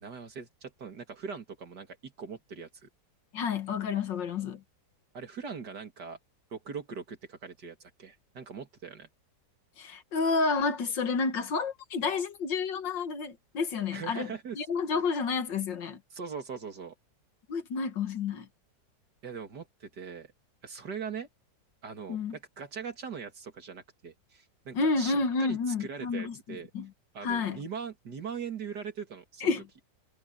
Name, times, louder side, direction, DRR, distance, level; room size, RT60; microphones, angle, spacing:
voice 1, 0.0-2.9 5.1-6.2 6.5-9.1 13.9-14.6 16.1-16.9 19.2-20.3 20.6-21.3 21.8-26.7 27.1-29.5, right 6 dB, 65° right, 3.0 m, -41 dB
voice 2, 3.3-4.6 9.8-14.3 14.6-16.0 17.5-18.5 22.1-22.4 24.7-26.3 26.7-26.9 27.2-27.6 29.4-29.6, left 4 dB, 90° left, 2.3 m, -30 dB
omnidirectional pair, 1.9 m